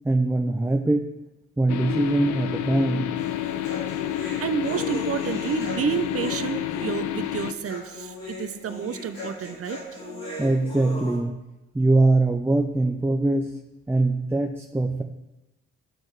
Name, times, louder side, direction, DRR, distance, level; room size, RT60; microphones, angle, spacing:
voice 1, 0.0-1.1 1.6-3.1 10.4-11.3 11.7-13.5 13.9-15.0, right 2 dB, 5° right, 3 dB, 0.6 m, -22 dB
sound 1, 1.7-7.5, left 12 dB, 65° left, 0.6 m, -29 dB
Human voice, 3.2-11.2, left 2 dB, 85° left, 2.8 m, -38 dB
voice 2, 4.2-9.8, right 7 dB, 45° right, 11 dB, 0.6 m, -30 dB
13.0 x 4.3 x 3.2 m, 0.97 s
hypercardioid pair, 45°, 32 cm